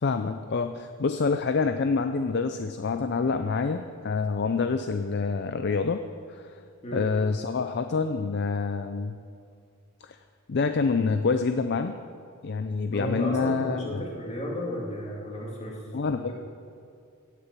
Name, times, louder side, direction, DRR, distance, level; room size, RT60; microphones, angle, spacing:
voice 1, 0.0-6.0 6.3-6.5 6.9-9.2 10.0-10.2 10.5-11.9 12.4-14.0 15.9-16.3, left 4 dB, 50° left, 8 dB, 0.5 m, -27 dB
voice 2, 6.8-7.1 12.9-15.8 16.2-16.3, equal, 30° left, -3 dB, 2.5 m, -33 dB
17.0 x 6.8 x 7.4 m, 2.4 s
head